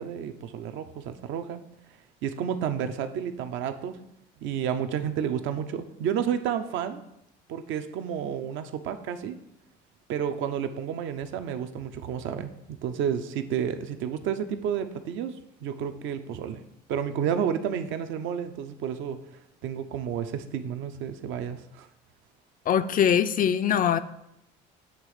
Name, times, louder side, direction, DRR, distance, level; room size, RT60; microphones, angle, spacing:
voice 1, 0.0-1.6 2.2-4.0 4.4-7.0 7.5-9.4 10.1-15.3 15.6-16.6 16.9-19.2 19.6-21.9, right 8 dB, 65° right, 8 dB, 0.6 m, -31 dB
voice 2, 22.7-24.0, left 8 dB, 40° left, 11 dB, 0.4 m, -22 dB
7.4 x 3.1 x 4.8 m, 0.82 s
supercardioid pair, 70°, 21 cm